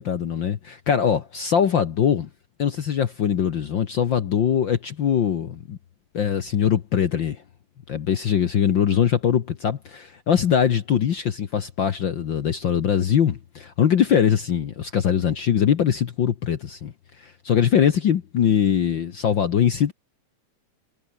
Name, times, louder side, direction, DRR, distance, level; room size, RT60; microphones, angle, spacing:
voice 1, 0.0-2.3 2.6-5.8 6.1-7.4 7.9-19.9, left 8 dB, 60° left, 1.2 m, -22 dB
omnidirectional pair, 3.7 m